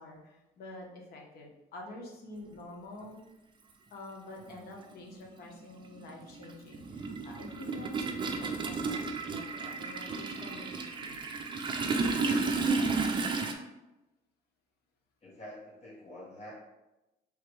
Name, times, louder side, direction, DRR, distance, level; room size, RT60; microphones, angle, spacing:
voice 1, 0.0-3.2 3.9-11.1, left 2 dB, 70° left, -1 dB, 1.2 m, -47 dB
Toilet flush, 3.0-3.1 4.4-4.6 4.9-13.5, right 4 dB, 30° right, 0.5 m, -32 dB
voice 2, 15.2-16.5, left 1 dB, 40° left, -6 dB, 1.3 m, -47 dB
3.3 x 3.1 x 4.6 m, 0.99 s
cardioid pair, 110°, 17 cm